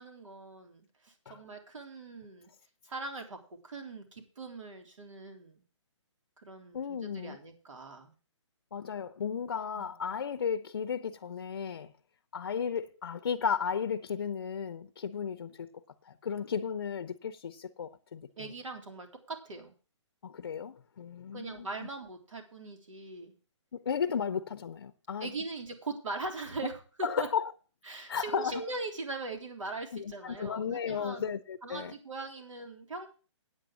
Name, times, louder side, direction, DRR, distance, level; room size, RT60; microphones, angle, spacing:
voice 1, 0.0-2.5 2.8-3.4 3.6-5.6 6.4-8.1 9.8-9.9 18.4-19.7 21.3-23.3 25.2-27.3 27.8-31.3 31.6-33.1, right 3 dB, 85° right, 3.6 m, -41 dB
voice 2, 6.7-7.4 8.7-11.9 12.3-15.7 16.1-18.5 20.2-21.7 23.9-25.3 27.0-27.5 28.1-28.6 29.9-31.9, left 7 dB, 45° left, 0.6 m, -34 dB
9.2 x 8.1 x 6.2 m
hypercardioid pair, 175°, 16 cm